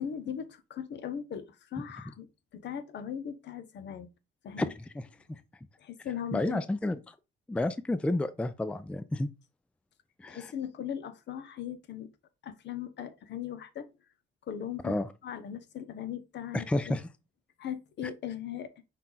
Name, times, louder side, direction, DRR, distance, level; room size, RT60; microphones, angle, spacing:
voice 1, 0.0-2.3 2.5-4.1 4.4-4.7 5.8-6.6 10.3-12.1 12.4-13.9 14.5-17.0 17.6-18.7, left 9 dB, 60° left, 0.7 m, -39 dB
voice 2, 6.3-7.0 7.5-9.3 10.2-10.5 14.8-15.1 16.5-17.1, left 2 dB, 5° left, 0.3 m, -30 dB
5.6 x 2.3 x 3.8 m
cardioid pair, 90°, 20 cm